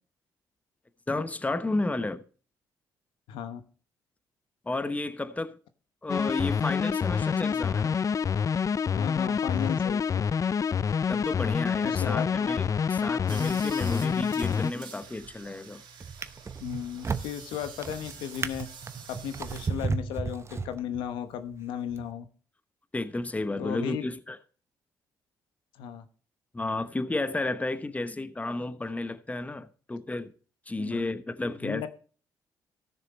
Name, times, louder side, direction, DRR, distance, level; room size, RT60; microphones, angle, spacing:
voice 1, 1.1-2.2 4.7-5.6 6.0-8.0 11.1-15.8 22.9-24.4 26.5-30.3 30.7-31.9, left 2 dB, 20° left, 1.0 m, -32 dB
voice 2, 3.3-3.6 8.9-10.2 11.8-12.3 16.6-18.7 19.1-22.3 23.6-24.1 25.8-26.1 30.8-31.1 31.6-31.9, left 9 dB, 85° left, 1.0 m, -35 dB
sound 1, 6.1-14.7, left 6 dB, 45° left, 0.4 m, -27 dB
sound 2, 13.3-19.7, right 6 dB, 75° right, 2.8 m, -47 dB
Drawer open or close, 15.0-15.5 16.0-21.2 21.9-22.1, right 4 dB, 35° right, 0.8 m, -34 dB
14.5 x 6.7 x 4.1 m
supercardioid pair, 65°, 8 cm